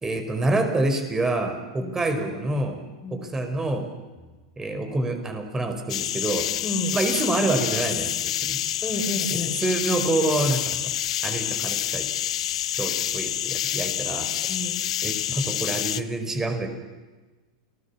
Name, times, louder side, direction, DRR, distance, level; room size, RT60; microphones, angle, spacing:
voice 1, 0.0-2.8 3.1-3.9 4.6-6.5 6.9-8.6 9.3-10.8 11.2-12.1 12.7-14.3 15.0-16.7, right 2 dB, 15° right, 6 dB, 4.9 m, -27 dB
sound 1, 5.9-16.0, left 12 dB, 70° left, 0.8 m, -28 dB
voice 2, 6.6-7.0 8.8-9.6 14.5-14.8, left 1 dB, 15° left, 3 dB, 5.2 m, -30 dB
29.0 x 19.5 x 7.2 m, 1.2 s
hypercardioid pair, 100°, 3 cm